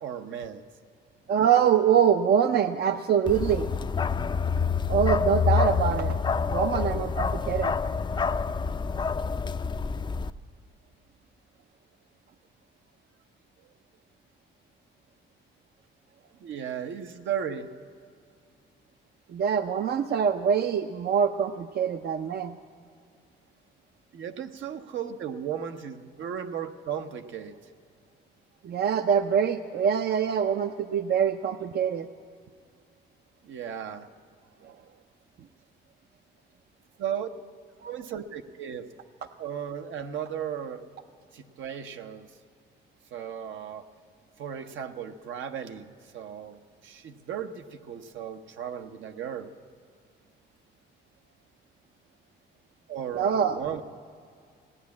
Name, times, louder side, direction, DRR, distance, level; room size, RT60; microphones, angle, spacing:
voice 1, 0.0-0.6 16.4-17.7 24.1-27.5 33.4-34.1 37.0-37.3 37.8-38.9 39.4-40.8 41.3-42.3 43.1-43.9 44.4-49.5 52.9-53.8, right 8 dB, 75° right, 7 dB, 0.9 m, -35 dB
voice 2, 1.3-3.7 4.9-6.2 6.5-7.8 19.3-22.6 28.6-32.1 34.6-34.7 53.2-53.8, right 8 dB, 55° right, 9 dB, 0.5 m, -24 dB
Bark, 3.3-10.3, left 5 dB, 25° left, 0.4 m, -27 dB
17.5 x 9.5 x 8.4 m, 2.3 s
cardioid pair, 90°, 20 cm